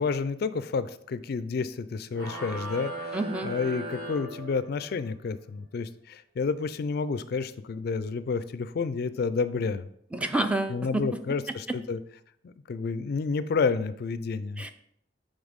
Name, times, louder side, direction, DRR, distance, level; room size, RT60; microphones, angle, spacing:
voice 1, 0.0-3.2 3.4-9.8 10.7-12.0 12.4-14.6, left 4 dB, 60° left, 14 dB, 0.4 m, -30 dB
sound 1, 2.1-5.0, right 1 dB, 55° right, 2.4 m, -38 dB
voice 2, 3.1-3.5 10.1-11.0 11.5-11.8 14.6-14.7, right 2 dB, 5° right, 7 dB, 0.4 m, -29 dB
7.1 x 3.7 x 5.1 m, 0.69 s
head